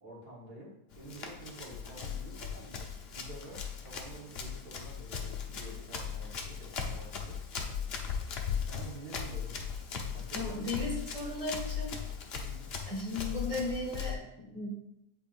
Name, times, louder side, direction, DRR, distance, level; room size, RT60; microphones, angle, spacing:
voice 1, 0.0-2.8 3.1-7.7 8.7-9.6 10.1-10.9 12.3-12.7, right 2 dB, 75° right, -4 dB, 2.1 m, -49 dB
Run, 0.9-14.1, left 7 dB, 55° left, 0.8 m, -38 dB
voice 2, 10.3-11.9 12.3-12.4 12.8-14.7, left 2 dB, 20° left, -5 dB, 1.5 m, -36 dB
8.5 x 4.4 x 2.5 m, 0.83 s
omnidirectional pair, 1.6 m